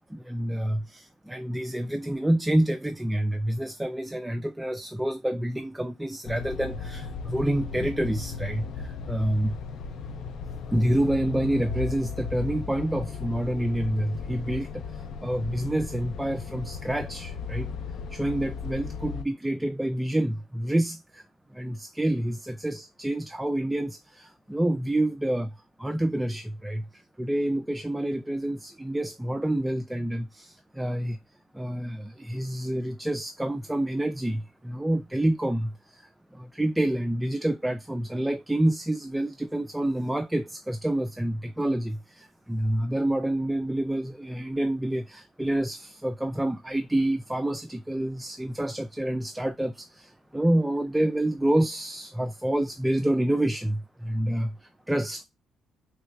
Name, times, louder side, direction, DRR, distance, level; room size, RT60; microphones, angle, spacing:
voice 1, 0.1-9.6 10.7-17.7 18.1-21.2 21.5-31.2 31.5-55.3, right 1 dB, 10° right, 0.3 m, -28 dB
sound 1, 6.2-19.2, left 5 dB, 75° left, 0.4 m, -36 dB
3.2 x 2.0 x 3.4 m
cardioid pair, 90°, 0 cm